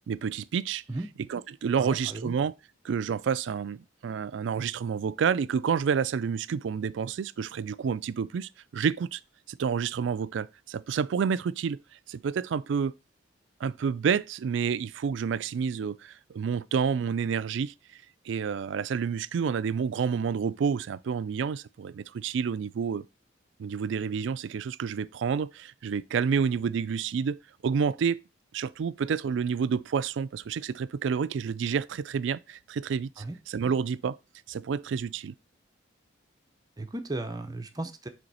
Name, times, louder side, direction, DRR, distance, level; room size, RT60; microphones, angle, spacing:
voice 1, 0.1-0.8 1.3-2.5 2.8-9.2 9.5-11.8 12.1-12.9 13.6-17.7 18.3-23.0 23.6-27.4 27.6-28.2 28.5-34.2 34.5-35.3, right 6 dB, 70° right, 0.3 m, -29 dB
voice 2, 1.8-2.3 33.2-33.4 36.8-38.1, right 2 dB, 20° right, 0.6 m, -35 dB
7.8 x 3.4 x 4.1 m
head